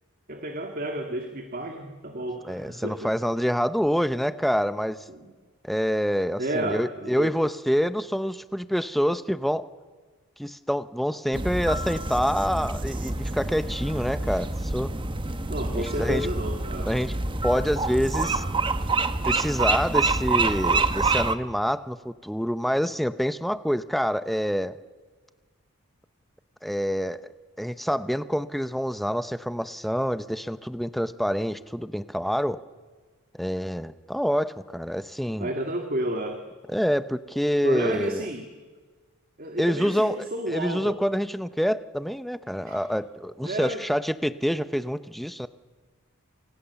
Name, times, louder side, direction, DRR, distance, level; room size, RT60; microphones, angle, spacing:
voice 1, 0.3-3.1 5.1-5.3 6.4-7.4 15.5-16.9 35.4-36.4 37.6-38.5 39.4-41.0 42.7-42.8 43.4-43.8, right 1 dB, 40° right, 4 dB, 2.2 m, -31 dB
voice 2, 2.4-5.0 5.6-9.7 10.4-14.9 15.7-16.3 16.8-17.1 17.4-18.4 19.2-24.8 26.6-27.2 27.6-32.6 33.4-35.5 36.7-38.2 39.6-45.5, equal, ahead, 12 dB, 0.7 m, -26 dB
sound 1, 11.3-21.3, right 3 dB, 20° right, 1.1 m, -27 dB
28.5 x 28.0 x 7.0 m, 1.4 s
head